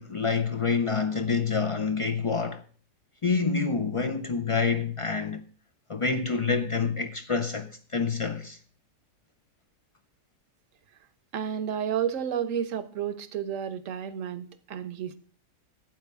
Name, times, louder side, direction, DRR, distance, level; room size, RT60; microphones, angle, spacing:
voice 1, 0.0-2.6 3.2-5.4 5.9-8.6, left 5 dB, 55° left, 0.3 m, -27 dB
voice 2, 11.3-15.2, right 8 dB, 75° right, 1.2 m, -31 dB
12.0 x 9.0 x 3.6 m
omnidirectional pair, 1.4 m